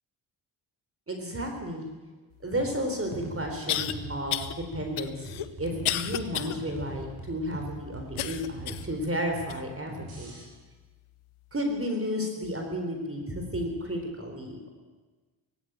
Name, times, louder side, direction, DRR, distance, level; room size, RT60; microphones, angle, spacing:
voice 1, 1.1-1.9 2.4-4.4 4.7-10.3 11.5-14.7, equal, 25° right, 3 dB, 3.9 m, -32 dB
sound 1, 2.6-10.4, right 2 dB, 45° right, 7.8 m, -42 dB
sound 2, 2.7-2.8 3.7-3.9 4.3-4.5 5.0-6.6 7.0-7.1 8.2-8.9 9.5-9.6 10.4-10.5, left 12 dB, 90° left, 1.1 m, -31 dB
18.0 x 16.0 x 9.0 m, 1.3 s
cardioid pair, 80°, 49 cm